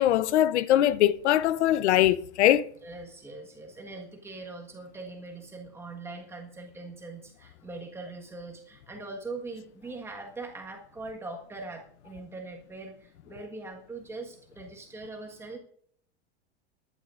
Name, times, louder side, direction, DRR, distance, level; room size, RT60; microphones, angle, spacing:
voice 1, 0.0-2.7, left 12 dB, 75° left, 0.8 m, -22 dB
voice 2, 2.8-15.6, right 3 dB, 5° right, 1.5 m, -41 dB
21.0 x 11.0 x 2.5 m
supercardioid pair, 175°, 34 cm